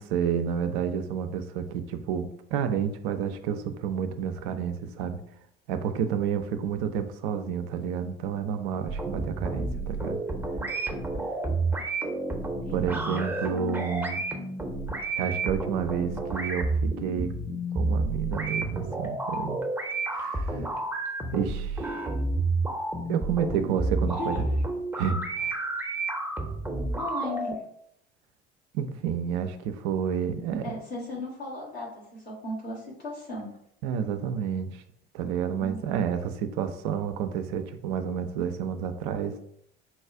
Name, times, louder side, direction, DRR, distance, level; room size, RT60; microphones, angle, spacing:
voice 1, 0.0-5.2 5.7-10.2 12.7-14.3 15.2-17.4 17.7-19.6 20.1-20.5 21.3-21.9 23.1-24.4 25.0-25.6 28.7-30.7 33.8-34.8 35.1-39.4, right 7 dB, 50° right, 8 dB, 0.5 m, -30 dB
sound 1, 8.9-27.5, right 2 dB, 5° right, 0.7 m, -30 dB
voice 2, 12.6-13.2 24.2-24.6 26.9-27.6 30.6-33.5 35.6-35.9, left 1 dB, 85° left, -6 dB, 1.5 m, -37 dB
4.1 x 2.3 x 4.5 m, 0.72 s
figure-of-eight pair, 60°, 31 cm